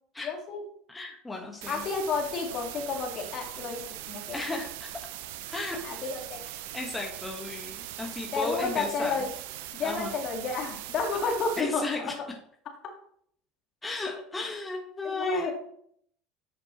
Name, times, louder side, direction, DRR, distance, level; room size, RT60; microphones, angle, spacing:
voice 1, 0.2-0.6 1.7-4.4 5.8-6.5 8.3-9.3 9.7-12.1 15.0-15.5, left 4 dB, 50° left, 2 dB, 2.0 m, -31 dB
voice 2, 0.9-1.8 4.3-4.9 5.5-5.8 6.7-9.2 9.8-10.1 11.6-12.1 13.8-15.5, left 2 dB, 15° left, 1 dB, 1.5 m, -34 dB
sound 1, 1.6-11.6, right 13 dB, 70° right, 0.5 m, -41 dB
10.0 x 5.1 x 3.1 m, 0.66 s
hypercardioid pair, 75°, 0 cm